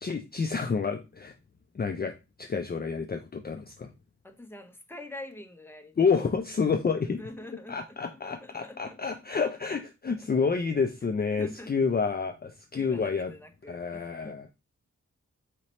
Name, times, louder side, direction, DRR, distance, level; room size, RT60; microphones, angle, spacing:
voice 1, 0.0-1.3 1.7-2.1 2.4-3.9 6.0-7.2 7.7-13.3 13.7-14.5, left 5 dB, 35° left, 0.5 m, -29 dB
voice 2, 4.2-6.1 6.6-6.7 7.2-8.0 8.2-9.2 11.4-11.7 12.7-14.3, left 1 dB, 10° left, 0.8 m, -45 dB
4.2 x 2.9 x 4.1 m
wide cardioid pair, 65°, 29 cm